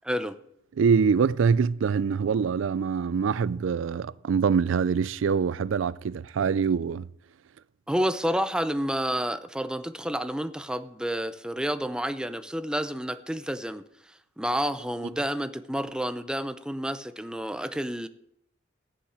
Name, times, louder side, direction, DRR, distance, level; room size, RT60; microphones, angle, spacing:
voice 1, 0.0-0.4 7.9-13.8 14.4-18.1, equal, 5° right, 0.6 m, -29 dB
voice 2, 0.8-7.1, right 6 dB, 85° right, 0.4 m, -24 dB
14.5 x 9.9 x 4.9 m
head